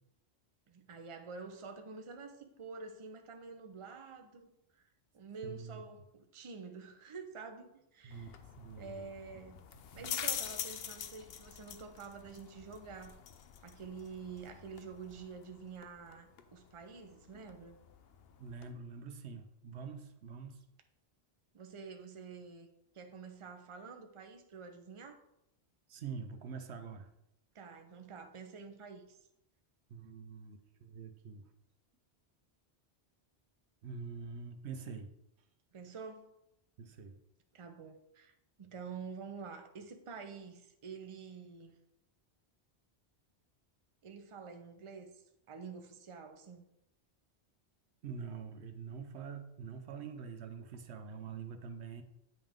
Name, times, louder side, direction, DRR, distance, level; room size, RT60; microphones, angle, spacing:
voice 1, 0.7-4.9 5.1-8.4 8.8-9.6 9.9-13.2 13.6-17.8 21.5-22.7 22.9-25.2 27.5-29.2 35.7-36.3 37.5-41.8 44.0-46.6, right 5 dB, 35° right, 0.7 m, -48 dB
voice 2, 5.4-5.8 8.0-8.3 8.6-9.1 10.0-10.1 18.4-20.6 25.9-27.1 29.9-31.4 33.8-35.1 36.8-37.2 48.0-52.0, right 5 dB, 80° right, 1.0 m, -45 dB
sound 1, 8.1-18.7, left 8 dB, 70° left, 0.8 m, -45 dB
8.7 x 5.4 x 3.6 m
omnidirectional pair, 1.1 m